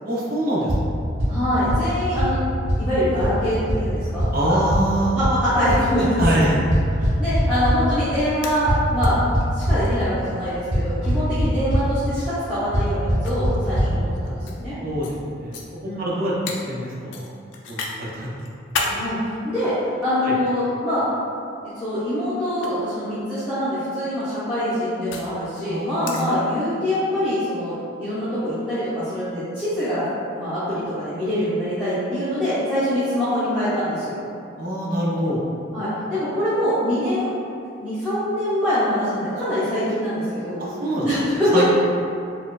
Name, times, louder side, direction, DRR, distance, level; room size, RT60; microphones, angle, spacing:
voice 1, 0.0-0.9 4.3-5.2 6.2-6.6 14.8-15.6 16.0-17.3 17.7-18.3 20.2-20.3 25.6-26.3 34.6-35.4 40.6-41.0 41.5-41.7, right 1 dB, 50° right, -5 dB, 0.5 m, -24 dB
sound 1, 0.7-0.8 1.2-1.3 1.7-1.8 2.2-2.3 2.7-2.8 3.2-3.3 3.7-3.8 4.2-4.3 4.7-4.8 5.2-5.3 5.7-5.8 6.2-6.3 6.7-7.7 8.7-9.8 10.7-10.8 11.1-11.4 11.7-11.8 12.7-12.8 13.1-13.2 13.4-13.5 13.7-13.9, equal, 90° right, 1.0 m, -19 dB
voice 2, 1.3-2.4 2.8-4.7 5.1-6.4 7.0-9.2 9.5-14.7 15.8-16.1 18.9-19.7 20.0-21.0 21.7-27.7 28.0-34.2 35.7-37.3 37.8-40.6 41.0-41.7, equal, 5° right, -18 dB, 0.8 m, -24 dB
sound 2, 8.4-9.1 9.4-9.5 9.8-9.9 11.0-11.3 12.3-12.4 13.2-14.6 15.0-15.2 15.5-15.6 16.5-16.6 17.1-18.0 18.4-19.0 19.8-20.6 21.6-21.8 22.5-22.7 24.0-25.3 26.0-26.3, left 4 dB, 70° left, 0.4 m, -31 dB
4.2 x 2.3 x 2.3 m, 2.6 s
head